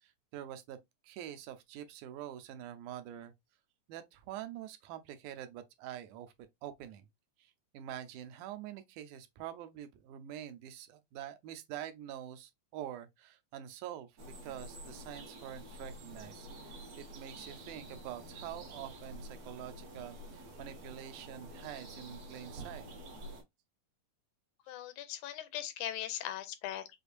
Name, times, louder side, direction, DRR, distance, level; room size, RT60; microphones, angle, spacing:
voice 1, 0.0-0.8 1.0-3.3 3.9-6.3 6.6-7.1 7.4-22.8, right 11 dB, 85° right, 2.1 m, -46 dB
sound 1, 14.2-23.4, right 1 dB, 55° right, 2.6 m, -48 dB
voice 2, 24.7-26.9, left 11 dB, 90° left, 2.1 m, -39 dB
6.4 x 2.6 x 2.4 m
omnidirectional pair, 3.5 m